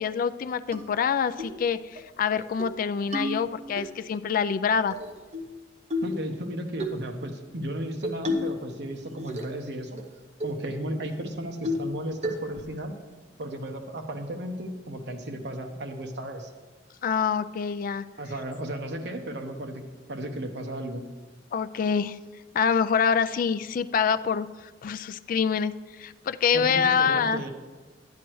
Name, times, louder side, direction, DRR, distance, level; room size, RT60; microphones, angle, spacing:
voice 1, 0.0-5.0 17.0-18.0 21.5-22.2 22.5-24.5 24.8-25.7 26.0-27.4, left 6 dB, 50° left, 12 dB, 0.3 m, -25 dB
sound 1, 0.7-0.8 1.4-1.6 2.0-2.1 2.4-2.8 3.1-3.9 4.9-5.5 5.9-6.2 6.8-7.0 8.0-8.6 8.9-9.6 10.0-10.1 10.4-10.6 11.0-11.1 11.6-12.0 12.2-12.7, left 1 dB, 40° right, 0.8 m, -31 dB
voice 2, 6.0-10.0 10.4-13.0 13.4-16.5 18.2-19.8 20.1-21.1 26.5-27.5, right 1 dB, 65° right, 4 dB, 1.0 m, -34 dB
11.0 x 9.6 x 3.1 m, 1.3 s
head